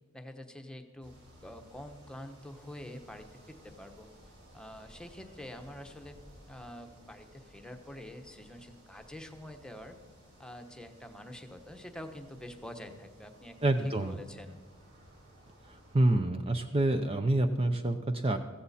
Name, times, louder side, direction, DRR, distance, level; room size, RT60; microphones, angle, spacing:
voice 1, 0.1-1.1 1.4-4.1 4.5-6.2 6.5-10.0 10.4-13.6 13.8-14.6, left 1 dB, 5° left, 5 dB, 1.1 m, -46 dB
sound 1, 1.0-16.0, equal, 60° right, 4.6 m, -57 dB
voice 2, 13.6-14.2 15.7-18.4, right 1 dB, 30° right, 7 dB, 0.6 m, -27 dB
15.5 x 15.5 x 4.2 m, 1.3 s
head